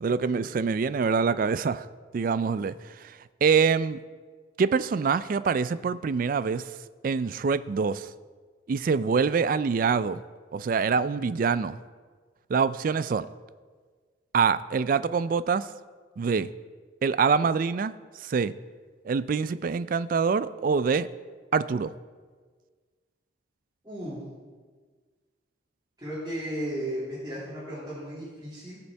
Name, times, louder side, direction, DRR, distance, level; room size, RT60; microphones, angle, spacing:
voice 1, 0.0-1.9 2.1-4.0 4.6-6.7 7.0-8.1 8.7-10.2 10.5-11.8 12.5-13.3 14.3-15.7 16.2-16.5 17.0-18.5 19.0-21.1 21.5-21.9, right 5 dB, 45° right, 15 dB, 0.3 m, -25 dB
voice 2, 23.8-24.2 26.0-28.8, equal, 20° right, -12 dB, 3.5 m, -35 dB
19.0 x 6.9 x 3.4 m, 1.5 s
head